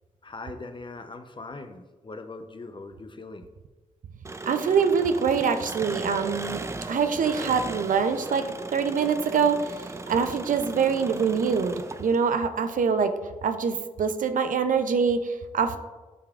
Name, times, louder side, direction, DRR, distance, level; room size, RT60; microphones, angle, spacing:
voice 1, 0.2-3.5, left 3 dB, 35° left, 8 dB, 0.6 m, -41 dB
Engine, 4.2-12.4, right 3 dB, 20° right, 0.4 m, -37 dB
voice 2, 4.5-8.4 8.7-13.1 13.4-15.8, right 6 dB, 75° right, 8 dB, 0.5 m, -24 dB
8.8 x 4.8 x 2.4 m, 1.2 s
cardioid pair, 50°, 14 cm